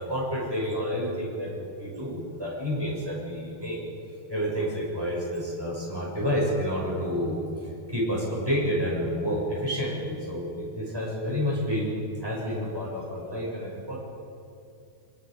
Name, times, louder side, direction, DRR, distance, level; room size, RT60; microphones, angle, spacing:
voice 1, 0.0-3.8 4.3-7.4 7.9-11.9 12.2-14.0, equal, 5° right, -5 dB, 6.8 m, -29 dB
24.0 x 23.5 x 5.4 m, 2.5 s
omnidirectional pair, 5.2 m